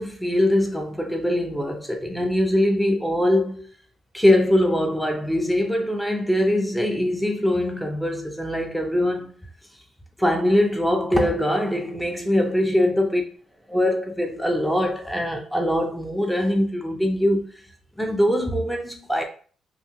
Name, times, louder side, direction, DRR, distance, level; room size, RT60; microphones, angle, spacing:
voice 1, 0.0-3.6 4.1-9.3 10.2-13.2 13.7-17.4 18.0-19.2, left 1 dB, ahead, 0.4 m, -22 dB
2.7 x 2.3 x 2.8 m
cardioid pair, 90°, 0 cm